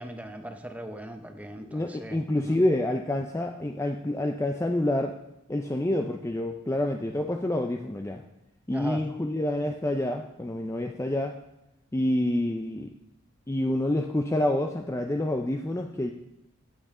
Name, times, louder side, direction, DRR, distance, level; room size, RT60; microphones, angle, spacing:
voice 1, 0.0-2.6 8.7-9.1, right 1 dB, 5° right, 6 dB, 0.8 m, -39 dB
voice 2, 1.7-5.1 5.5-8.2 8.7-11.4 11.9-12.9 13.5-16.1, left 1 dB, 15° left, 4 dB, 0.4 m, -27 dB
16.0 x 7.8 x 3.7 m, 0.89 s
head